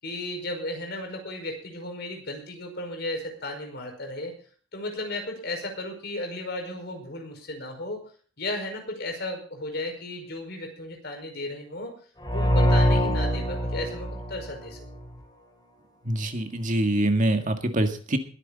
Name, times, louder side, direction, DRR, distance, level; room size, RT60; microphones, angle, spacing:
voice 1, 0.0-4.3 4.7-8.0 8.4-11.9 12.3-15.0, left 1 dB, 60° left, 4 dB, 5.1 m, -34 dB
sound 1, 12.2-15.1, equal, 20° left, 3.6 m, -24 dB
voice 2, 16.1-18.2, right 1 dB, 45° right, 6 dB, 1.9 m, -24 dB
21.0 x 9.7 x 4.1 m, 0.42 s
head